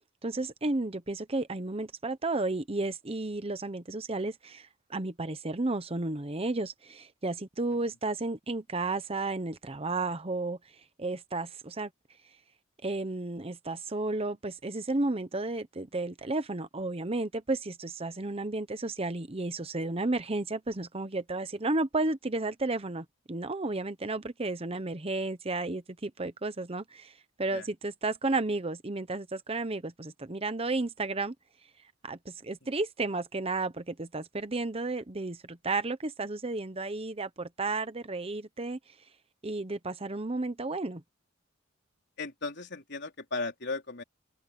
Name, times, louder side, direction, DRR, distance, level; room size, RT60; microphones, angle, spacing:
voice 1, 0.2-10.6 11.0-11.9 12.8-27.1 27.4-31.3 32.0-38.8 39.4-41.0, right 2 dB, 30° right, 0.9 m, -32 dB
voice 2, 42.2-44.0, left 3 dB, 55° left, 4.1 m, -36 dB
open air
head